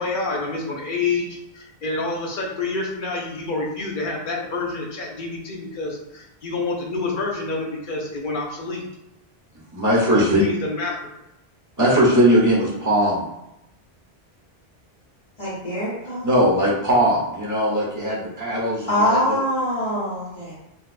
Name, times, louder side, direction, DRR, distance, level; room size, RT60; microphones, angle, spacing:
voice 1, 0.0-8.8 10.2-11.0, left 3 dB, 60° left, -1 dB, 0.8 m, -28 dB
voice 2, 9.7-10.4 11.8-13.2 16.2-19.4, equal, 20° right, -6 dB, 0.9 m, -19 dB
voice 3, 15.4-16.3 18.9-20.5, equal, 35° left, -13 dB, 1.2 m, -23 dB
4.0 x 2.4 x 2.4 m, 0.85 s
omnidirectional pair, 1.1 m